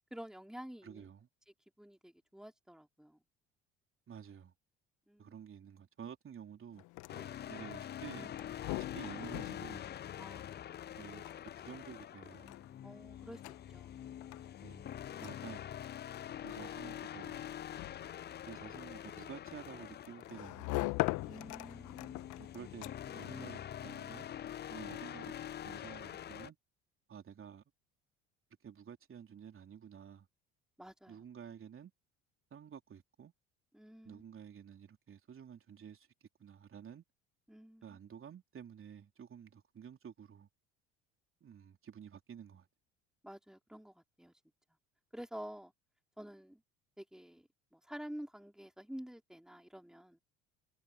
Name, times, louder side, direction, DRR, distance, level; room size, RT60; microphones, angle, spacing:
voice 1, 0.1-1.1 1.8-3.2 5.1-5.4 7.1-7.7 10.2-11.0 12.8-14.6 21.3-22.3 30.8-31.2 33.7-34.2 37.5-38.0 43.2-44.4 45.1-45.7 46.2-46.6 47.0-50.2, equal, ahead, 5.2 m, -50 dB
voice 2, 0.8-1.3 4.1-4.5 5.2-6.8 7.5-8.6 8.9-9.8 11.0-11.3 11.6-12.6 14.6-14.9 15.2-15.6 16.4-17.5 18.5-21.0 22.4-24.3 24.7-25.3 25.6-26.6 27.1-27.6 28.6-30.3 31.1-31.9 32.5-33.3 34.0-37.0 37.8-40.5 41.4-42.7, right 8 dB, 35° right, 3.9 m, -51 dB
sound 1, 6.7-23.3, left 22 dB, 60° left, 1.6 m, -44 dB
sound 2, 7.1-26.5, left 10 dB, 30° left, 0.6 m, -45 dB
hypercardioid pair, 65°, 34 cm